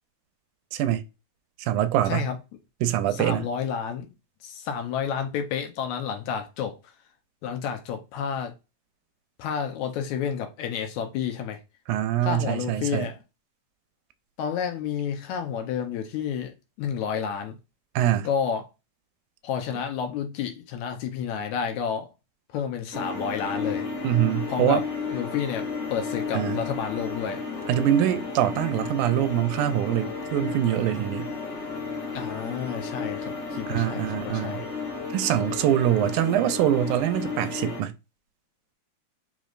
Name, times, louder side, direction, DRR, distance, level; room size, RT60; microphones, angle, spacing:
voice 1, 0.7-1.0 1.6-2.3 2.8-3.5 11.9-13.1 18.0-18.3 24.0-24.8 26.3-26.6 27.7-31.3 33.7-34.6 35.1-37.9, right 11 dB, 85° right, 2.0 m, -24 dB
voice 2, 2.1-2.4 3.1-4.1 4.4-6.8 7.4-8.5 9.4-11.6 12.2-13.2 14.4-17.6 18.2-18.6 19.4-22.1 22.5-23.9 24.5-24.8 25.1-27.4 32.1-34.7, left 7 dB, 75° left, 2.1 m, -30 dB
sound 1, 22.9-37.8, left 4 dB, 50° left, 1.6 m, -33 dB
5.1 x 3.1 x 2.4 m
omnidirectional pair, 3.5 m